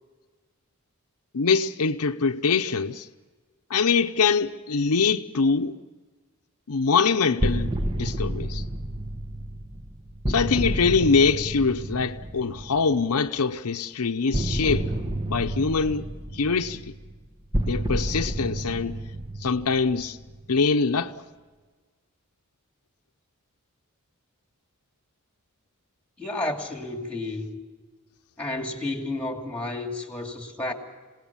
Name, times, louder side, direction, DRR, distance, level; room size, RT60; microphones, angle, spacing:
voice 1, 1.3-3.1 3.7-5.8 6.7-8.6 10.3-14.9 15.3-16.1 16.3-16.8 17.6-19.0 19.4-20.2 20.5-21.1, left 5 dB, 80° left, 0.8 m, -23 dB
sound 1, 7.4-13.2 14.3-20.6, right 1 dB, 20° right, 1.1 m, -30 dB
voice 2, 26.2-27.6 28.4-30.7, left 2 dB, 5° left, 2.6 m, -31 dB
27.5 x 18.5 x 7.1 m
head